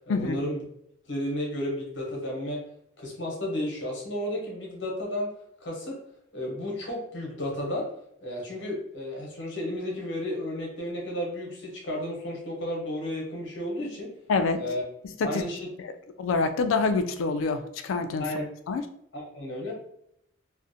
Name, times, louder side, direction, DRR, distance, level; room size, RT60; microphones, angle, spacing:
voice 1, 0.1-0.6 1.1-2.6 3.0-5.3 5.6-6.0 6.3-7.9 8.2-14.1 14.6-14.8 15.2-15.7 18.2-18.5 19.1-19.7, left 1 dB, 65° left, -2 dB, 0.8 m, -32 dB
voice 2, 16.2-18.2 18.7-18.8, left 4 dB, 85° left, 8 dB, 0.3 m, -26 dB
2.5 x 2.0 x 2.6 m, 0.73 s
head